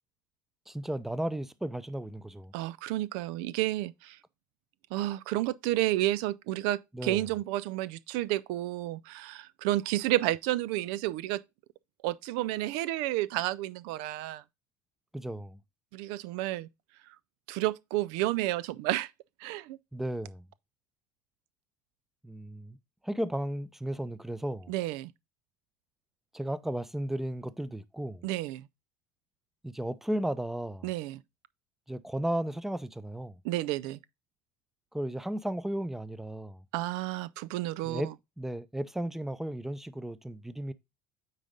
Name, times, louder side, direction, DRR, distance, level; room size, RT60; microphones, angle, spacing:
voice 1, 0.7-2.5 6.9-7.2 15.1-15.6 19.9-20.5 22.2-22.8 23.0-24.7 26.3-28.3 29.6-30.9 31.9-33.4 34.9-36.6 37.8-40.7, right 1 dB, 5° right, 0.6 m, -34 dB
voice 2, 2.5-4.2 4.9-11.4 12.0-14.4 15.9-16.7 17.5-19.1 19.4-19.8 24.7-25.1 28.2-28.7 30.8-31.2 33.4-34.0 36.7-38.0, right 16 dB, 70° right, 0.4 m, -31 dB
9.0 x 3.9 x 3.6 m
hypercardioid pair, 80°, 8 cm